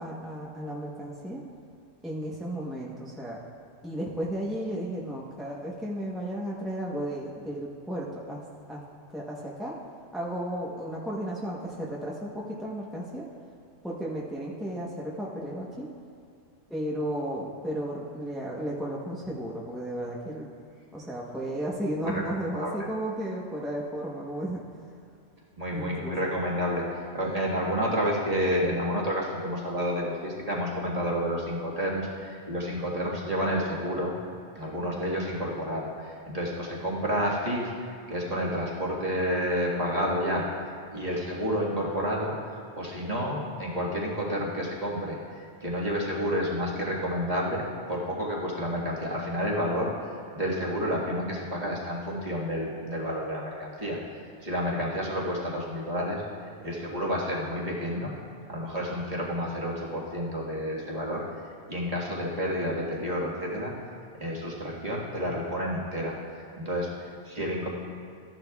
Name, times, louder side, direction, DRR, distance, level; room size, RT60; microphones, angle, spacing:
voice 1, 0.0-1.4 2.0-3.4 3.8-8.4 8.7-8.8 9.1-9.8 10.1-13.2 13.8-15.9 16.7-20.5 20.9-24.6 25.7-26.3, right 1 dB, ahead, -4 dB, 0.9 m, -34 dB
voice 2, 25.6-26.8 27.1-34.1 34.6-37.7 38.1-40.5 40.9-49.9 50.3-54.0 54.4-56.2 56.6-58.1 58.5-61.2 61.7-63.7 64.2-66.2 66.6-67.7, equal, 35° right, -4 dB, 1.6 m, -30 dB
14.0 x 10.5 x 2.3 m, 2.4 s
omnidirectional pair, 1.2 m